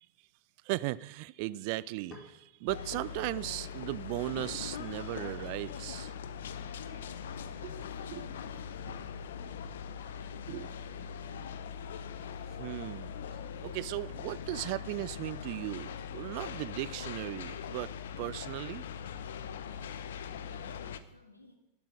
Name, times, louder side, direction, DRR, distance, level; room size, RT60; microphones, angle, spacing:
voice 1, 0.6-6.1 8.1-8.3 8.9-9.0 10.5-10.7 12.6-13.1 13.6-18.9, right 19 dB, 45° right, 0.4 m, -37 dB
sound 1, 1.9-6.9, left 2 dB, 25° left, 4.5 m, -59 dB
sound 2, 2.7-21.0, left 7 dB, 60° left, 0.8 m, -41 dB
voice 2, 6.8-11.7 20.3-21.5, equal, 85° left, 2.1 m, -58 dB
11.5 x 9.1 x 7.7 m
figure-of-eight pair, 90°, 0 cm